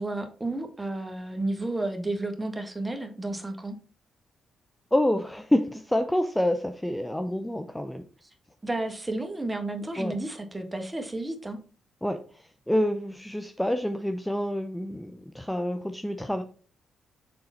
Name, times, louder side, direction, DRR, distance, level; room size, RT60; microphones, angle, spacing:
voice 1, 0.0-3.8 8.2-8.3 8.6-11.6, right 2 dB, 20° right, 6 dB, 1.6 m, -32 dB
voice 2, 4.9-8.0 10.0-10.2 12.0-12.2 12.7-16.4, left 1 dB, 5° left, 7 dB, 0.7 m, -27 dB
6.8 x 3.9 x 4.3 m, 0.39 s
hypercardioid pair, 50°, 0 cm